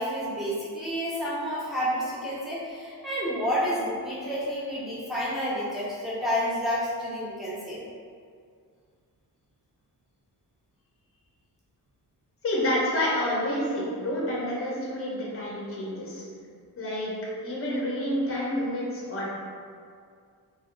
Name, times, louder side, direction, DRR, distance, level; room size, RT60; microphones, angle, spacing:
voice 1, 0.0-7.8, equal, ahead, -8 dB, 0.7 m, -30 dB
voice 2, 12.4-16.2 16.8-17.1 17.4-19.3, left 1 dB, 35° left, -5 dB, 0.7 m, -28 dB
2.7 x 2.2 x 2.4 m, 2.1 s
cardioid pair, 80°, 42 cm